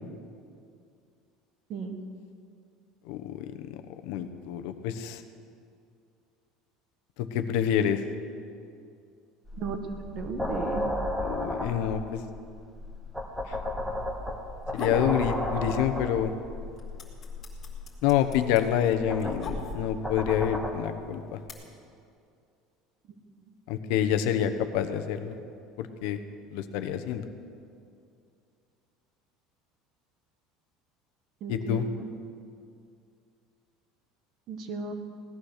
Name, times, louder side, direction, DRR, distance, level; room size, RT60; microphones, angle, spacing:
voice 1, 1.7-2.0 9.6-9.8 10.1-10.9 31.4-32.1 34.5-34.9, right 5 dB, 40° right, 7 dB, 1.3 m, -35 dB
voice 2, 3.0-5.2 7.2-8.0 11.2-12.2 13.5-13.6 14.7-16.3 18.0-21.4 23.7-25.4 25.8-26.2 26.5-27.3 31.5-31.9, left 9 dB, 65° left, 9 dB, 1.0 m, -27 dB
sound 1, 9.5-20.7, left 1 dB, 5° right, 1.2 m, -34 dB
sound 2, 14.5-15.1 15.5-16.2 16.5-20.1 20.9-21.5, left 3 dB, 25° left, 2.3 m, -39 dB
17.5 x 12.0 x 6.6 m, 2.4 s
cardioid pair, 175°, 0 cm